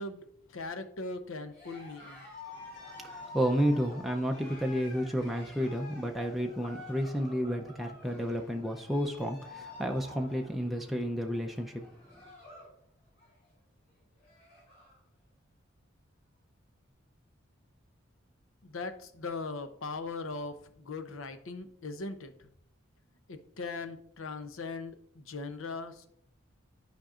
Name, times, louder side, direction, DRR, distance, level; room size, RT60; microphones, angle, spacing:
voice 1, 0.0-2.3 18.6-22.3 23.3-26.1, left 3 dB, 80° left, 9 dB, 0.7 m, -39 dB
Cheering, 1.5-12.8 13.1-13.5 13.9-14.0 14.2-15.0, left 2 dB, 45° left, 3.3 m, -49 dB
voice 2, 3.0-11.8, equal, ahead, 1 dB, 0.5 m, -31 dB
11.5 x 5.2 x 2.5 m, 0.67 s
head